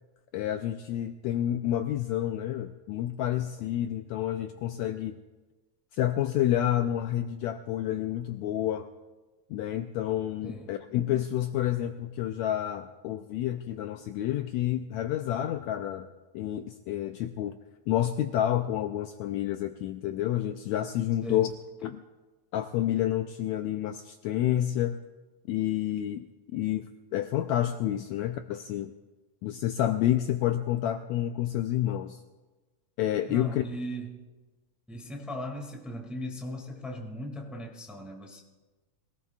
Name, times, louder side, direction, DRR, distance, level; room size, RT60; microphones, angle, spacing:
voice 1, 0.3-5.1 5.9-8.9 9.5-16.1 16.3-17.6 17.9-21.5 21.8-22.0 22.5-25.0 25.5-26.2 26.5-28.9 29.4-32.2 33.0-33.6, left 12 dB, 80° left, 7 dB, 1.7 m, -29 dB
voice 2, 10.4-10.8 21.2-21.5 33.3-34.2 34.9-38.4, equal, ahead, 1 dB, 1.4 m, -38 dB
24.5 x 18.0 x 2.4 m, 1.2 s
omnidirectional pair, 3.6 m